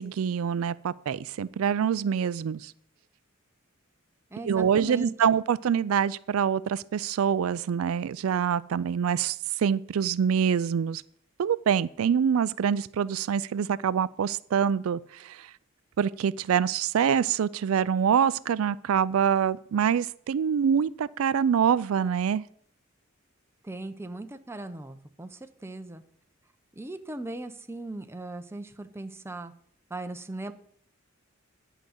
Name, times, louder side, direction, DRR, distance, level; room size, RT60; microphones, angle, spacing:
voice 1, 0.0-2.7 4.5-11.0 11.4-15.5 16.0-22.4, right 7 dB, 90° right, 18 dB, 0.4 m, -25 dB
voice 2, 4.3-5.1 23.6-26.0 26.7-29.5 29.9-30.5, right 2 dB, 10° right, 8 dB, 0.7 m, -38 dB
10.5 x 5.0 x 7.9 m, 0.63 s
head